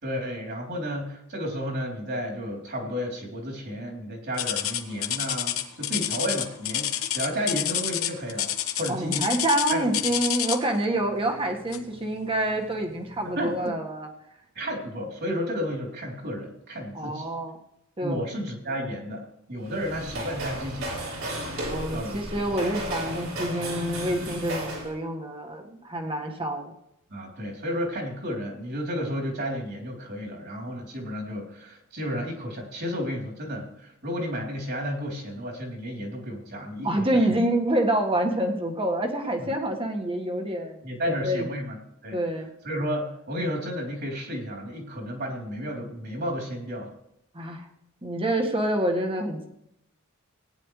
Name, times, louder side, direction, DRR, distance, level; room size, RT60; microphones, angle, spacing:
voice 1, 0.0-8.5 8.8-9.3 9.7-10.0 13.4-13.7 14.6-17.3 18.0-21.0 21.9-22.2 27.1-37.4 39.4-39.5 40.8-42.2 42.6-46.9, equal, 55° right, 0 dB, 3.6 m, -32 dB
sound 1, 4.4-10.8 11.7-12.0 12.5-12.6 13.3-13.4, left 11 dB, 90° left, 1.1 m, -28 dB
voice 2, 8.9-14.1 16.9-17.6 18.0-18.2 21.5-26.7 36.8-41.5 42.1-42.5 47.3-47.6 48.0-49.5, right 1 dB, 25° right, 3 dB, 1.7 m, -27 dB
sound 2, 19.6-24.9, right 1 dB, 80° right, 3.9 m, -33 dB
17.5 x 10.0 x 3.3 m, 0.80 s
head